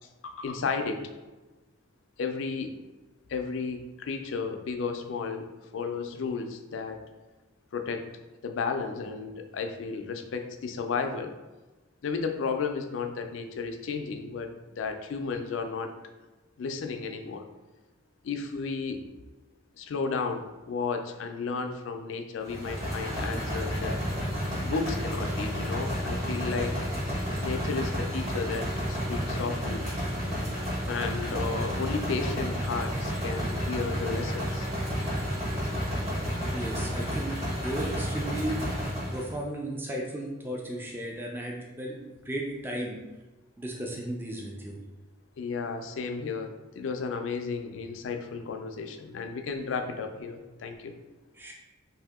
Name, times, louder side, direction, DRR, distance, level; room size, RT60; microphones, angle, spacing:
voice 1, 0.2-1.1 2.2-2.7 3.3-5.5 5.7-7.0 7.7-8.1 8.4-11.3 12.0-15.9 16.6-17.4 18.2-19.0 19.8-24.0 24.6-26.7 27.4-29.9 30.9-34.7 45.4-50.9, left 5 dB, 70° left, 6 dB, 0.4 m, -33 dB
sound 1, 22.5-39.3, equal, 35° right, 1.1 m, -31 dB
voice 2, 36.5-38.6 39.1-43.0 43.6-44.8 51.3-51.5, right 1 dB, 10° right, -1 dB, 0.3 m, -35 dB
2.7 x 2.6 x 3.5 m, 1.1 s
head